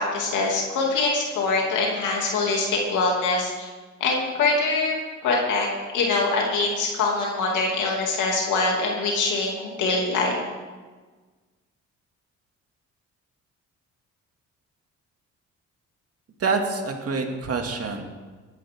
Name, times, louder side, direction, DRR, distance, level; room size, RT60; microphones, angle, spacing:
voice 1, 0.0-3.7 4.0-5.0 5.2-5.7 5.9-10.4, left 3 dB, 80° left, -2 dB, 2.8 m, -24 dB
voice 2, 16.4-18.0, right 4 dB, 50° right, 3 dB, 2.4 m, -26 dB
19.5 x 11.0 x 3.8 m, 1.4 s
cardioid pair, 90°, 30 cm